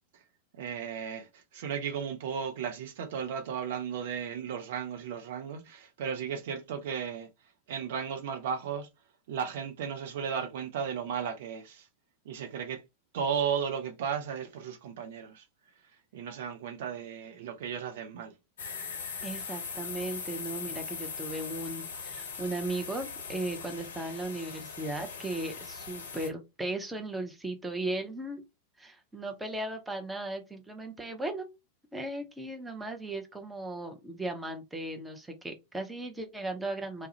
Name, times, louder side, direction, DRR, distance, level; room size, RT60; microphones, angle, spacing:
voice 1, 0.5-7.3 7.7-8.9 9.3-11.9 12.3-12.8 13.1-15.4 16.1-18.3, right 7 dB, 55° right, 0.5 m, -35 dB
sound 1, 18.6-26.3, left 5 dB, 65° left, 0.5 m, -40 dB
voice 2, 19.2-28.4 28.8-31.5 31.9-37.1, right 2 dB, 10° right, 0.6 m, -36 dB
2.3 x 2.0 x 2.8 m
figure-of-eight pair, 90°, 0 cm